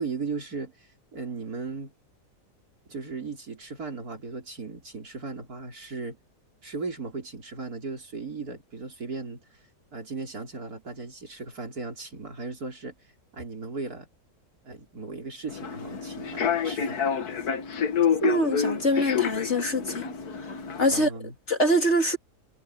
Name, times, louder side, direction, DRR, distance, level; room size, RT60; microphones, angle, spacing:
voice 1, 0.0-1.9 2.9-6.2 6.6-9.4 9.9-12.9 13.3-14.1 14.6-17.1 20.9-21.3, right 4 dB, 60° right, 4.8 m, -37 dB
Human voice / Subway metro underground, 15.5-21.0, left 7 dB, 65° left, 2.0 m, -28 dB
voice 2, 18.2-20.0 20.4-21.1 21.5-22.2, equal, 40° left, 3.3 m, -24 dB
omnidirectional pair, 1.8 m